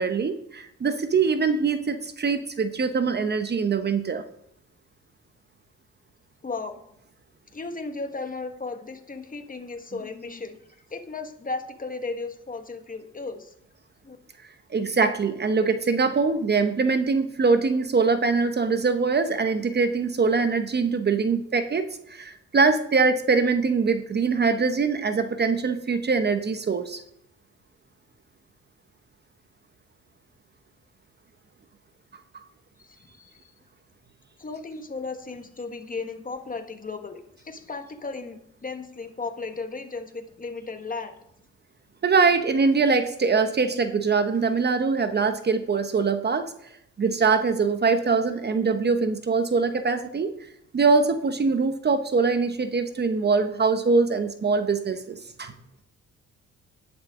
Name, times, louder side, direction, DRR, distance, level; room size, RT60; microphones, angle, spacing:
voice 1, 0.0-4.2 14.7-27.0 42.0-46.5 47.0-50.3 50.7-55.5, right 4 dB, 35° right, 9 dB, 0.9 m, -23 dB
voice 2, 6.4-6.8 7.5-13.5 14.0-14.2 32.8-33.5 34.4-41.1, left 3 dB, 30° left, 7 dB, 1.5 m, -35 dB
11.0 x 10.0 x 3.7 m, 0.75 s
cardioid pair, 90°, 30 cm